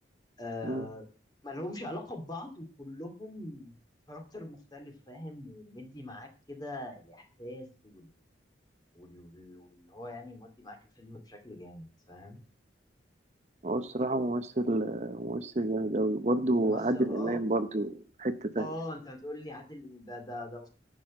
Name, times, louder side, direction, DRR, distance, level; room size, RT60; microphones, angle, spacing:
voice 1, 0.4-1.1 1.4-3.8 4.1-8.1 8.9-12.4 16.6-17.4 18.6-20.7, left 1 dB, 20° left, 5 dB, 2.3 m, -42 dB
voice 2, 13.6-18.7, right 2 dB, 40° right, 10 dB, 0.8 m, -29 dB
11.0 x 6.3 x 7.5 m, 0.37 s
head